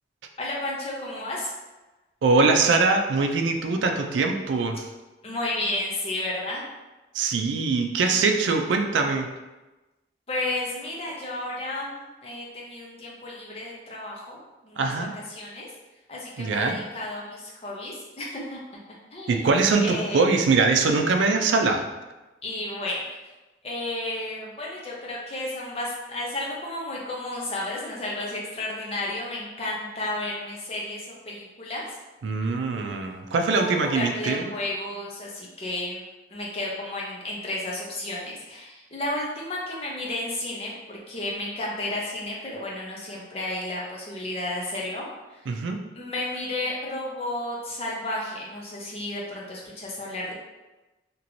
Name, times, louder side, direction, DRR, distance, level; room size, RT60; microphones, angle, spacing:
voice 1, 0.4-1.5 5.2-6.7 10.3-14.9 15.3-15.7 16.1-18.6 19.1-19.5 19.8-20.2 22.4-23.1 23.6-31.9 33.5-36.0 36.3-45.1 45.4-45.5 45.9-50.3, left 1 dB, 35° left, -4 dB, 0.6 m, -32 dB
voice 2, 2.2-4.8 7.1-9.3 14.8-15.1 16.4-16.8 19.3-21.8 32.2-34.5 45.5-45.8, right 4 dB, 85° right, 5 dB, 0.4 m, -22 dB
2.9 x 2.9 x 2.6 m, 1.1 s
head